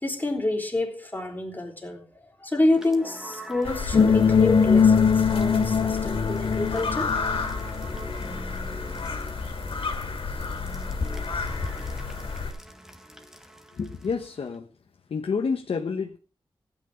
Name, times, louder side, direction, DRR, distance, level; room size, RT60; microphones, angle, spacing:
voice 1, 0.0-7.1, left 2 dB, 20° left, 3.6 m, -28 dB
sound 1, 2.7-14.6, right 1 dB, 5° right, 2.0 m, -45 dB
sound 2, 3.6-12.5, left 4 dB, 70° left, 2.9 m, -31 dB
sound 3, 3.9-7.8, left 6 dB, 50° left, 0.5 m, -20 dB
voice 2, 13.7-14.7 15.1-16.2, left 5 dB, 90° left, 1.2 m, -29 dB
16.0 x 9.5 x 5.1 m
wide cardioid pair, 105°, 10 cm